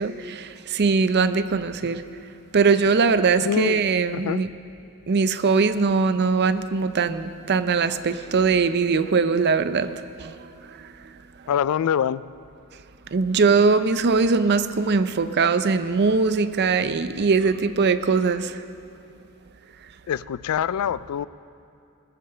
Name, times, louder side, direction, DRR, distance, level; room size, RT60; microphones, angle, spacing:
voice 1, 0.0-2.0 2.5-4.5 5.1-10.3 13.1-18.6, right 4 dB, 50° right, 12 dB, 0.5 m, -21 dB
voice 2, 3.4-3.8 4.1-4.4 11.5-12.2 20.1-21.3, left 8 dB, 75° left, 19 dB, 0.3 m, -24 dB
20.5 x 7.5 x 6.7 m, 2.6 s
head